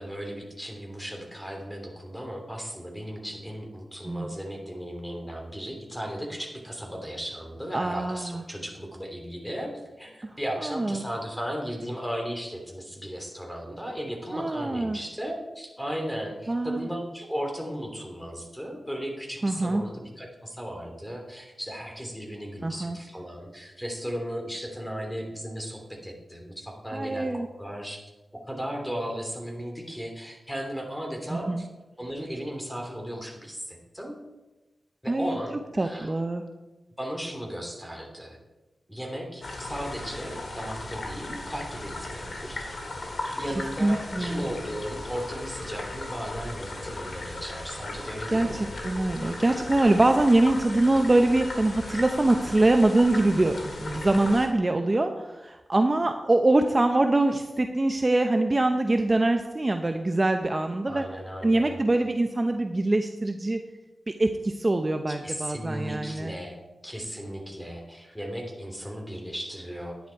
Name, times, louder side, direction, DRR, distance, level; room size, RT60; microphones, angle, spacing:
voice 1, 0.0-28.0 28.5-31.7 32.0-34.2 35.0-36.1 37.0-38.4 38.9-42.8 43.4-48.7 60.9-61.8 65.1-66.6 66.8-70.0, equal, 5° left, 1 dB, 3.1 m, -36 dB
voice 2, 7.7-8.4 10.2-11.0 14.3-15.0 16.5-16.9 19.4-19.8 22.6-23.0 26.9-27.5 31.3-31.6 35.1-35.4 35.8-36.4 43.8-44.5 48.3-61.0 61.4-63.6 64.1-66.3, right 2 dB, 30° right, 6 dB, 0.8 m, -24 dB
sound 1, 39.4-54.5, left 2 dB, 60° left, 2.4 m, -37 dB
10.5 x 10.0 x 4.7 m, 1.1 s
cardioid pair, 65°, 0 cm